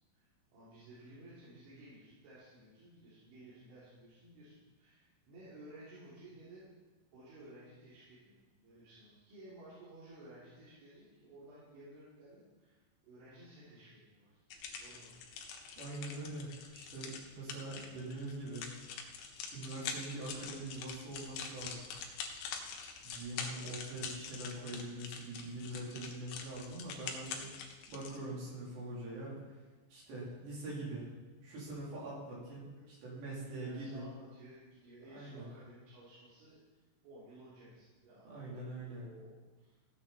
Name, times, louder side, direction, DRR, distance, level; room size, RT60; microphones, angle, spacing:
voice 1, 0.1-6.7 7.1-14.4 14.7-15.2 32.7-33.2 33.6-36.6 37.0-39.8, right 1 dB, 80° right, -10 dB, 5.5 m, -56 dB
sound 1, 14.5-28.2, left 6 dB, 90° left, 3.6 m, -45 dB
voice 2, 15.8-18.7 19.5-21.9 23.0-27.5 27.9-29.4 29.9-31.1 31.4-34.1 35.1-35.5 38.3-39.1, right 2 dB, 65° right, -6 dB, 5.9 m, -43 dB
16.0 x 8.7 x 4.3 m, 1.2 s
omnidirectional pair, 5.4 m